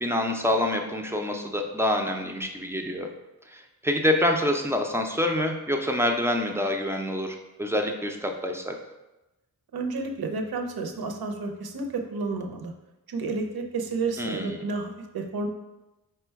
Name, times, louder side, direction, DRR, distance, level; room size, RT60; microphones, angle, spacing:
voice 1, 0.0-3.1 3.5-8.8 14.2-14.6, left 1 dB, 5° right, 3 dB, 0.4 m, -26 dB
voice 2, 9.7-12.7 13.1-15.5, right 3 dB, 70° right, 3 dB, 0.6 m, -31 dB
4.9 x 2.2 x 4.5 m, 1.0 s
wide cardioid pair, 120°, 38 cm